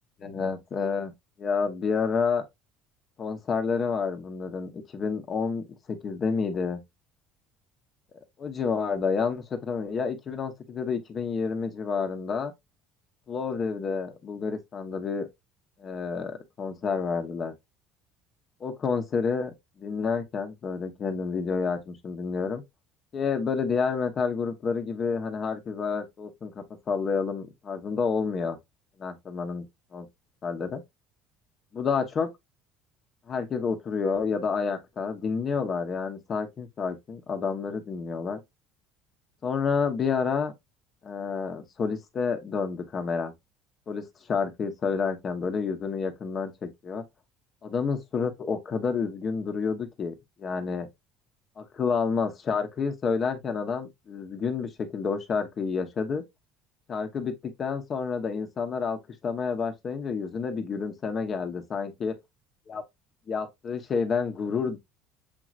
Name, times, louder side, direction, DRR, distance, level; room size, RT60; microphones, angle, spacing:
voice 1, 0.2-1.1 1.4-2.4 3.2-6.8 8.4-12.5 13.3-15.3 15.8-17.5 18.6-22.6 23.1-28.6 29.0-29.7 29.9-30.1 30.4-30.8 31.7-32.3 33.3-38.4 39.4-40.5 41.0-43.3 43.9-47.0 47.6-50.1 50.4-50.9 51.6-56.2 56.9-57.3 57.6-62.1 62.7-62.8 63.3-64.8, left 5 dB, 40° left, 1.1 m, -29 dB
7.0 x 3.0 x 2.5 m
supercardioid pair, 105°, 0 cm